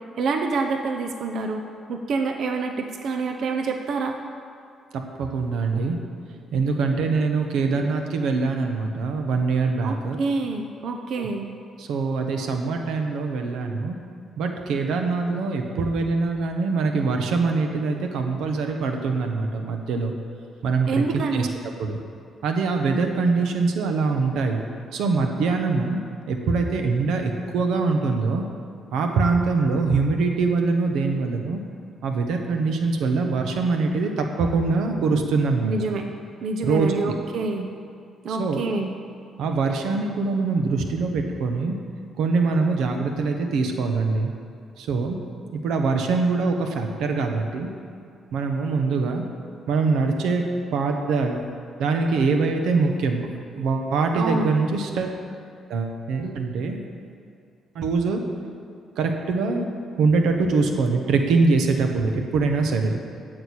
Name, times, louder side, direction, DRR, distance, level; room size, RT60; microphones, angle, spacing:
voice 1, 0.2-1.6 1.9-4.2 9.8-11.5 20.9-21.5 35.6-36.0 36.4-37.7 38.2-38.9 54.1-54.5, right 3 dB, 65° right, 4 dB, 0.8 m, -27 dB
voice 2, 4.9-6.0 6.5-10.2 11.2-11.3 11.8-14.0 14.4-20.1 20.6-21.0 21.3-21.5 21.8-22.0 22.4-24.6 24.9-26.0 26.3-28.4 28.9-31.6 32.0-35.7 36.6-37.1 38.3-38.6 39.4-41.7 42.2-44.3 44.8-45.2 45.5-47.7 48.3-49.2 49.7-51.4 51.8-53.3 53.5-55.2 55.7-56.8 57.7-58.2 59.0-59.7 60.0-63.0, right 4 dB, 85° right, 4 dB, 1.3 m, -23 dB
8.9 x 6.8 x 8.7 m, 2.4 s
cardioid pair, 90°, 0 cm